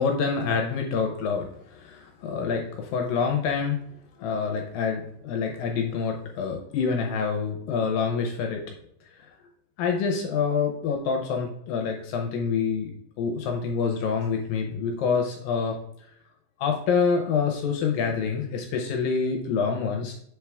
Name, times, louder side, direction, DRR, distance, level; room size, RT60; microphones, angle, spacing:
voice 1, 0.0-3.8 4.2-8.6 9.8-12.9 13.2-15.8 16.6-20.1, left 5 dB, 75° left, 3 dB, 2.3 m, -26 dB
7.4 x 4.6 x 3.5 m, 0.69 s
omnidirectional pair, 4.4 m